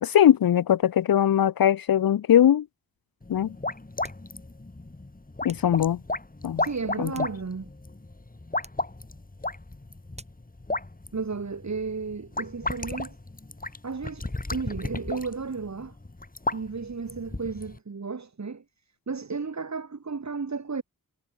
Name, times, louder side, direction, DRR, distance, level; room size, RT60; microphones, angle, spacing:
voice 1, 0.0-2.7 3.3-3.5 5.4-6.0 6.4-6.6 7.0-7.1, left 10 dB, 75° left, 0.5 m, -20 dB
sound 1, 3.2-17.8, left 2 dB, 25° left, 1.7 m, -35 dB
sound 2, 4.0-4.4 5.5-5.8 6.9-7.8 8.6-8.9 10.1-10.5, right 1 dB, 20° right, 5.6 m, -50 dB
voice 2, 6.6-7.7 11.1-13.2 13.8-15.9 16.5-18.6 19.1-20.8, right 4 dB, 50° right, 1.4 m, -33 dB
wide cardioid pair, 65°, 35 cm